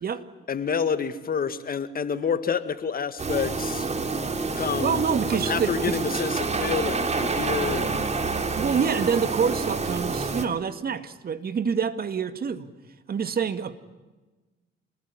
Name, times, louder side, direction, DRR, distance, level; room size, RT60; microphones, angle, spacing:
voice 1, 0.5-3.9 4.5-5.0 5.5-8.1, left 6 dB, 45° left, 11 dB, 2.0 m, -28 dB
sound 1, 3.2-10.5, right 4 dB, 35° right, 3.2 m, -28 dB
voice 2, 4.8-6.0 8.5-12.7 13.1-13.8, right 6 dB, 50° right, 11 dB, 2.2 m, -26 dB
28.0 x 20.5 x 9.8 m, 1.2 s
cardioid pair, 90°, 20 cm